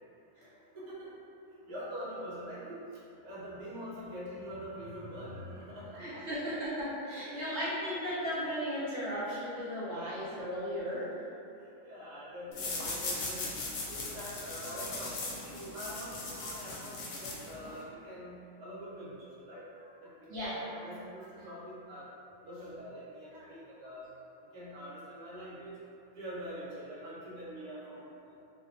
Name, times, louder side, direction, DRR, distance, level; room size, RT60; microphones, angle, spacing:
voice 1, 0.7-1.2 1.7-2.8 3.2-6.3 7.3-7.8 11.8-13.5 13.8-22.1 22.4-24.1 24.5-25.8 26.1-28.3, equal, 80° right, -8 dB, 1.2 m, -44 dB
voice 2, 6.0-11.1 20.3-20.6, equal, 60° right, -11 dB, 0.8 m, -36 dB
sound 1, 12.5-17.8, left 3 dB, 70° left, 0.9 m, -39 dB
2.6 x 2.2 x 2.5 m, 2.6 s
omnidirectional pair, 1.5 m